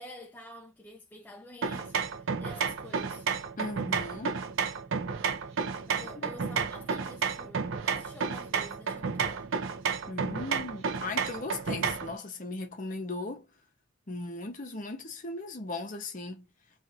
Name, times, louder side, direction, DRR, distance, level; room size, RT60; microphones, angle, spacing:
voice 1, 0.0-3.3 5.5-9.5, left 1 dB, 10° left, 0.3 m, -48 dB
sound 1, 1.6-12.2, right 6 dB, 65° right, 0.5 m, -32 dB
voice 2, 3.6-4.4 6.1-6.4 10.1-13.5 14.1-16.5, left 2 dB, 40° left, 0.7 m, -38 dB
2.5 x 2.5 x 2.7 m
head